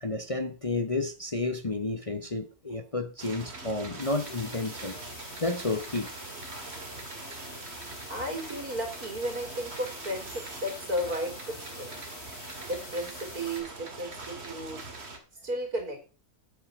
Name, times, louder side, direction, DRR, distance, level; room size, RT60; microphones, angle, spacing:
voice 1, 0.0-5.0 5.4-6.1, left 2 dB, 30° left, 0.8 m, -31 dB
sound 1, 3.2-15.2, right 3 dB, 45° right, 2.1 m, -43 dB
sound 2, 4.0-13.6, left 1 dB, 70° left, 4.9 m, -46 dB
voice 2, 8.1-12.1 12.7-14.9 15.4-16.0, equal, 80° right, 3.9 m, -34 dB
8.3 x 8.2 x 6.1 m
omnidirectional pair, 1.6 m